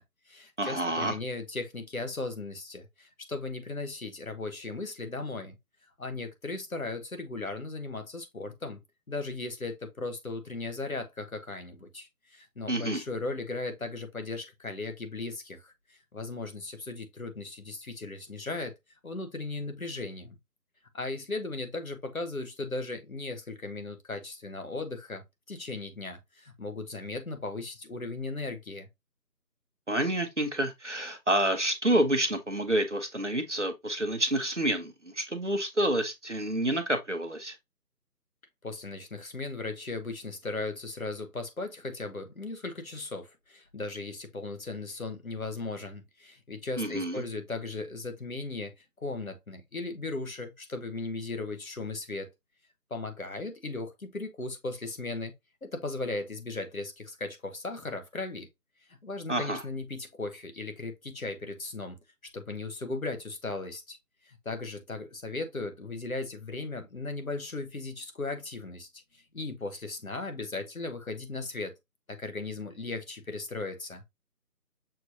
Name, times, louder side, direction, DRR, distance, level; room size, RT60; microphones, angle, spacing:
voice 1, 0.0-5.6 6.0-8.8 9.1-18.7 19.0-20.4 20.9-28.9 38.6-48.7 49.0-52.3 52.9-55.3 55.6-58.5 58.9-62.0 62.2-64.0 64.2-71.7 72.1-74.0, left 3 dB, 55° left, 1.2 m, -37 dB
voice 2, 0.6-1.2 12.7-13.0 29.9-37.6 46.8-47.2 59.3-59.6, right 1 dB, 50° right, 0.8 m, -28 dB
6.7 x 3.0 x 2.6 m
figure-of-eight pair, 180°, 48 cm